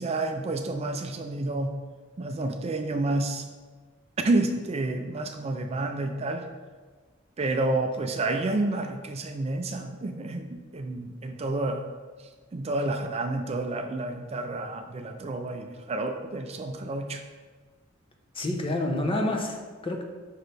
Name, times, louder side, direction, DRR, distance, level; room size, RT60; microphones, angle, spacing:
voice 1, 0.0-1.7 2.2-3.5 4.2-6.4 7.4-11.8 12.5-17.2, right 2 dB, 30° right, 5 dB, 0.4 m, -29 dB
voice 2, 18.3-20.0, left 1 dB, 25° left, 2 dB, 0.7 m, -28 dB
6.0 x 5.3 x 3.3 m, 1.4 s
head